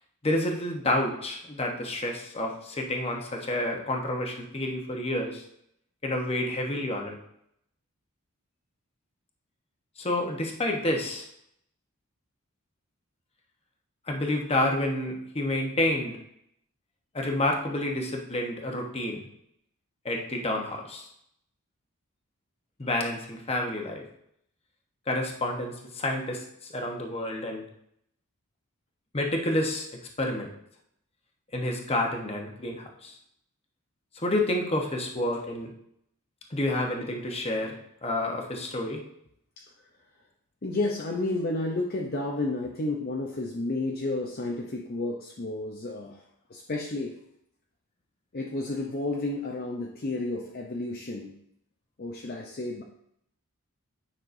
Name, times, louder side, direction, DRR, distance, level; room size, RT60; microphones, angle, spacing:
voice 1, 0.2-5.4 6.0-7.2 10.0-11.3 14.1-16.2 17.1-19.2 20.0-21.1 22.8-24.0 25.1-27.6 29.1-29.9 30.2-30.5 31.5-33.2 34.1-35.7 36.5-37.7 38.0-39.0, left 1 dB, 25° left, 1 dB, 1.0 m, -29 dB
voice 2, 40.6-46.2 46.5-47.2 48.3-51.3 52.0-52.8, left 2 dB, 45° left, 0 dB, 0.6 m, -31 dB
9.4 x 5.7 x 2.6 m, 0.73 s
head